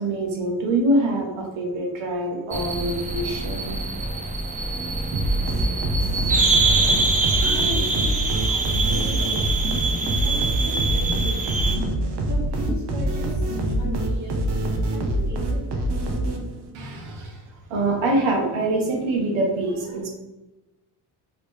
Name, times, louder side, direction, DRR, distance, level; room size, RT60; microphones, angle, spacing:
voice 1, 0.0-3.7 16.7-17.4 17.7-20.1, right 1 dB, 80° right, 0 dB, 1.1 m, -24 dB
sound 1, 2.5-11.8, right 3 dB, 20° right, 0.4 m, -24 dB
sound 2, 5.1-16.7, right 1 dB, 60° right, 0.8 m, -25 dB
voice 2, 7.4-9.8 10.2-11.6 12.2-14.4 14.9-16.3, equal, 40° right, -3 dB, 1.5 m, -37 dB
sound 3, 9.3-14.0 14.3-15.1, right 1 dB, 20° left, 0.7 m, -36 dB
3.2 x 2.6 x 3.2 m, 1.1 s
cardioid pair, 80°, 47 cm